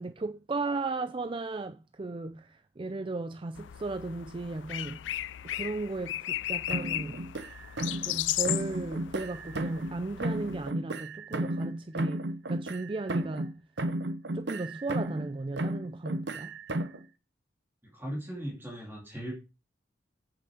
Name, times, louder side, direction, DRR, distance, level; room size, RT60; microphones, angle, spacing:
voice 1, 0.0-5.0 5.5-7.3 8.0-12.2 12.5-13.6 14.3-16.5, right 3 dB, 30° right, 0.4 m, -35 dB
sound 1, 3.5-10.7, left 14 dB, 80° left, 0.4 m, -36 dB
sound 2, 6.7-8.2 8.5-10.0 10.2-13.5 13.8-15.3 15.6-17.0, right 1 dB, 65° right, 0.9 m, -33 dB
voice 2, 17.8-19.4, right 1 dB, 10° right, 2.7 m, -38 dB
8.3 x 7.2 x 4.9 m
head